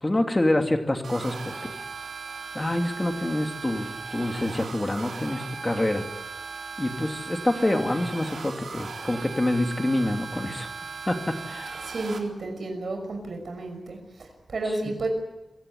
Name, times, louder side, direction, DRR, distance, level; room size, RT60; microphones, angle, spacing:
voice 1, 0.0-1.7 2.5-6.0 6.8-10.7 11.1-11.8, left 1 dB, 20° left, 4 dB, 2.8 m, -26 dB
sound 1, 1.0-12.2, right 5 dB, 85° right, 3.8 m, -38 dB
voice 2, 11.8-15.1, right 2 dB, 65° right, 4 dB, 5.9 m, -32 dB
27.0 x 17.0 x 9.9 m, 1.1 s
wide cardioid pair, 135°, 0 cm